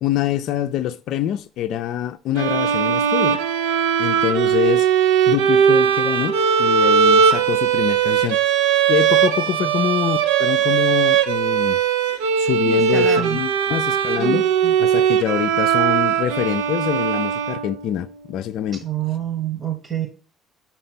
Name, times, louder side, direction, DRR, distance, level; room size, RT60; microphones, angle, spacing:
voice 1, 0.0-3.4 4.0-8.4 8.9-11.8 12.1-14.5 14.8-18.8, left 11 dB, 70° left, 0.4 m, -25 dB
sound 1, 2.3-18.0, right 8 dB, 90° right, 0.5 m, -19 dB
voice 2, 12.7-13.4 14.2-14.8 18.8-20.1, right 8 dB, 40° right, 1.2 m, -27 dB
5.9 x 4.3 x 5.8 m
supercardioid pair, 65°, 0 cm